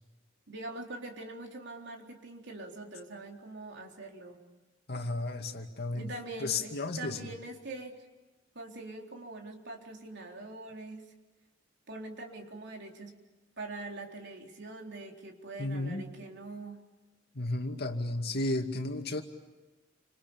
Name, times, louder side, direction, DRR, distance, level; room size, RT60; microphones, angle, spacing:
voice 1, 0.5-4.4 5.9-8.0 8.5-11.1 11.9-13.2 13.6-16.8, right 2 dB, 65° right, 1 dB, 3.8 m, -43 dB
voice 2, 4.9-6.1 6.4-7.3 15.6-16.0 17.3-19.2, left 2 dB, 55° left, 5 dB, 2.4 m, -33 dB
29.5 x 26.5 x 7.1 m, 1.2 s
head